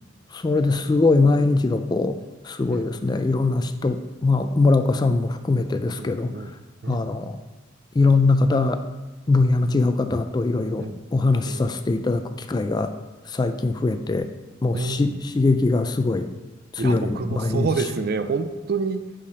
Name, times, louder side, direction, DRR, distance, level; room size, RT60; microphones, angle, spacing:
voice 1, 0.3-2.1 2.5-6.3 6.9-7.4 8.0-8.8 9.3-12.2 12.5-12.9 13.3-14.3 14.6-16.3 16.8-17.7, left 3 dB, 20° left, 9 dB, 0.3 m, -21 dB
voice 2, 5.9-6.5 6.8-7.1 10.8-11.0 11.5-11.7 14.7-15.2 16.8-19.0, right 4 dB, 50° right, 10 dB, 0.4 m, -28 dB
5.5 x 5.0 x 5.2 m, 1.2 s
head